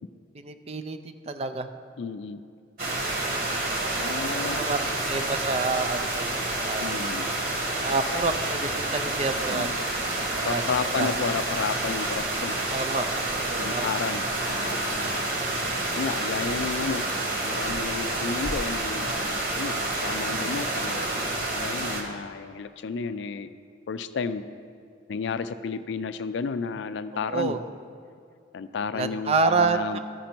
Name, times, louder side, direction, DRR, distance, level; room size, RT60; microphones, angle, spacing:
voice 1, 0.4-1.0 1.3-1.7 4.2-6.9 7.8-9.9 10.3-10.6 11.0-11.1 12.7-13.1 13.4-13.9 27.3-27.6 28.9-30.1, right 4 dB, 30° right, 9 dB, 0.4 m, -28 dB
voice 2, 2.0-2.4 4.0-4.6 6.8-7.3 9.5-9.7 10.4-12.6 13.6-15.3 15.9-17.1 17.4-23.5 23.9-24.4 25.1-27.6 28.5-30.1, left 5 dB, 70° left, 11 dB, 0.4 m, -32 dB
sound 1, 2.8-22.0, right 2 dB, 50° right, 1.3 m, -29 dB
13.5 x 5.2 x 4.4 m, 2.5 s
head